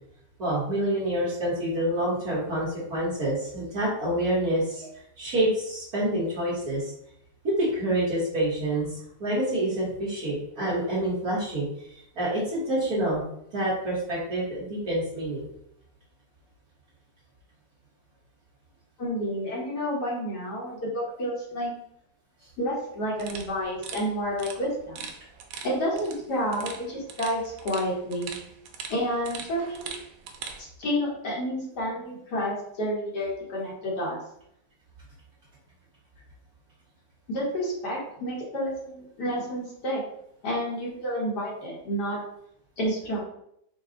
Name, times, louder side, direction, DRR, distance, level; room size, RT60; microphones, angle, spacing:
voice 1, 0.4-6.9 7.4-13.2 13.5-15.5 22.4-22.5, right 1 dB, 55° right, -7 dB, 1.7 m, -27 dB
voice 2, 19.0-21.7 22.6-25.1 25.6-28.3 28.9-29.9 30.6-34.2 37.3-40.0 40.4-42.2 42.8-43.2, equal, 60° left, -4 dB, 1.7 m, -30 dB
sound 1, 23.2-30.6, right 6 dB, 90° right, 1.4 m, -42 dB
4.7 x 2.3 x 3.8 m, 0.74 s
omnidirectional pair, 2.0 m